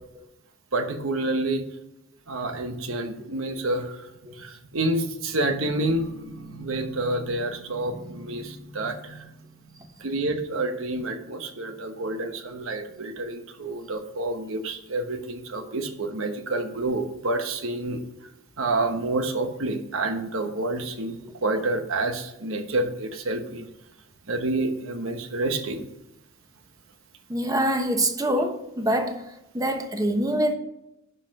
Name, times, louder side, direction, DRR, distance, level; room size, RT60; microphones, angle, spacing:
voice 1, 0.7-1.6 2.3-4.1 4.4-9.3 10.0-18.0 18.6-23.7 24.3-25.9, right 2 dB, 80° right, 7 dB, 1.1 m, -28 dB
voice 2, 27.3-29.3 29.5-30.5, right 1 dB, 20° right, 6 dB, 1.0 m, -25 dB
11.5 x 5.5 x 5.4 m, 0.87 s
head